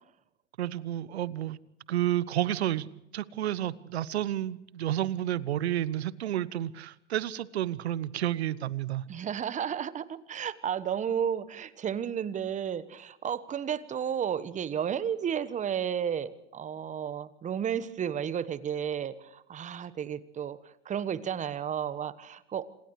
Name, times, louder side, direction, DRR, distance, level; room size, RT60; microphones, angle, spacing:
voice 1, 0.6-1.6 1.9-2.9 3.1-9.0, right 12 dB, 65° right, 20 dB, 1.1 m, -30 dB
voice 2, 9.1-22.7, right 8 dB, 20° right, 16 dB, 1.2 m, -32 dB
30.0 x 27.5 x 3.2 m, 0.82 s
figure-of-eight pair, 95°, 35 cm